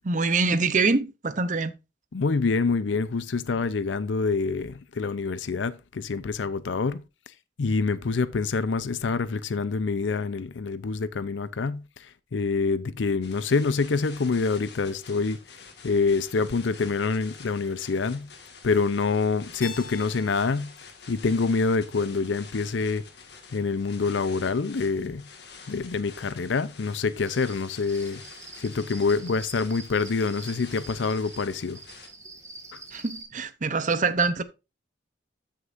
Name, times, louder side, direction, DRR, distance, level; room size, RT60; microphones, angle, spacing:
voice 1, 0.0-1.7 32.9-34.4, right 4 dB, 45° right, 0.7 m, -24 dB
voice 2, 2.1-7.0 7.6-18.3 18.6-20.7 21.1-23.0 23.5-25.2 25.7-28.2 28.6-31.8 32.7-32.8, left 4 dB, 85° left, 0.6 m, -26 dB
sound 1, 13.2-32.1, left 5 dB, 65° left, 1.8 m, -48 dB
Keyboard (musical), 19.6-22.4, left 5 dB, 50° left, 1.7 m, -45 dB
Cricket, 27.3-33.2, right 3 dB, 15° right, 1.7 m, -45 dB
13.0 x 6.5 x 2.5 m
head